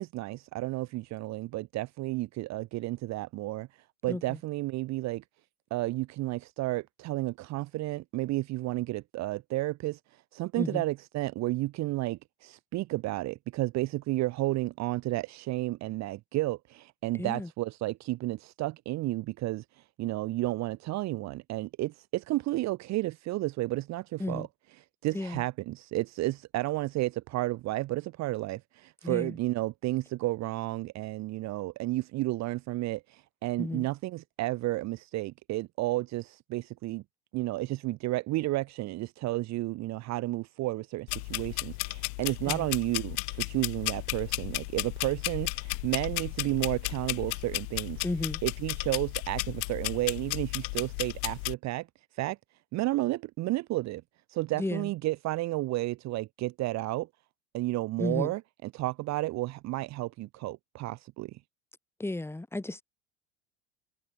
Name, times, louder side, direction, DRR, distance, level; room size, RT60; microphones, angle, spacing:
voice 1, 0.0-3.7 4.0-5.2 5.7-24.5 25.0-37.0 37.3-48.0 48.4-51.9 52.1-52.4 52.7-54.0 54.3-57.1 57.5-61.4, right 18 dB, 45° right, 1.0 m, -32 dB
voice 2, 4.1-4.4 10.6-10.8 17.1-17.5 24.2-24.5 25.1-25.4 29.0-29.4 33.6-33.9 42.5-42.7 48.0-48.4 54.5-54.9 58.0-58.3 62.0-62.8, left 2 dB, 5° left, 2.1 m, -33 dB
sound 1, 41.1-51.5, left 32 dB, 60° left, 0.6 m, -34 dB
hypercardioid pair, 85°, 38 cm